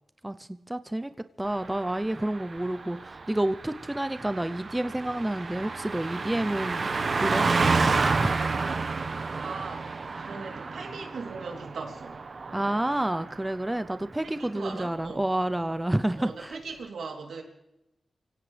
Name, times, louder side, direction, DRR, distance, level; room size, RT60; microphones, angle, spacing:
voice 1, 0.2-1.1 1.4-6.9 7.2-7.5 8.0-8.5 12.5-16.6, right 1 dB, 15° right, 11 dB, 0.6 m, -29 dB
Car passing by, 1.5-13.5 13.8-14.0, right 4 dB, 55° right, 1.1 m, -30 dB
voice 2, 8.9-12.2 14.2-15.3 16.1-17.4, right 4 dB, 90° right, 1 dB, 3.3 m, -40 dB
25.0 x 17.0 x 3.4 m, 0.93 s
cardioid pair, 75°, 0 cm